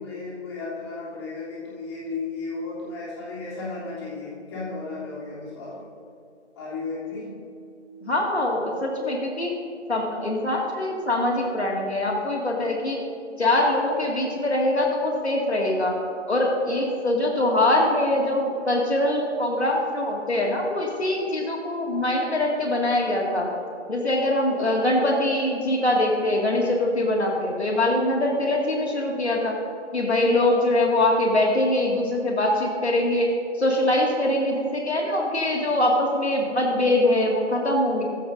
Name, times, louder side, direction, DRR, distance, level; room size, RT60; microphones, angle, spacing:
voice 1, 0.0-5.9 6.5-7.3, left 3 dB, 25° left, -7 dB, 3.0 m, -34 dB
voice 2, 8.0-9.5 9.9-13.0 13.4-15.9 16.3-23.5 23.9-29.6 29.9-33.3 33.5-38.0, left 1 dB, 65° left, -1 dB, 2.2 m, -23 dB
15.0 x 15.0 x 2.7 m, 2.4 s
figure-of-eight pair, 145°, 35 cm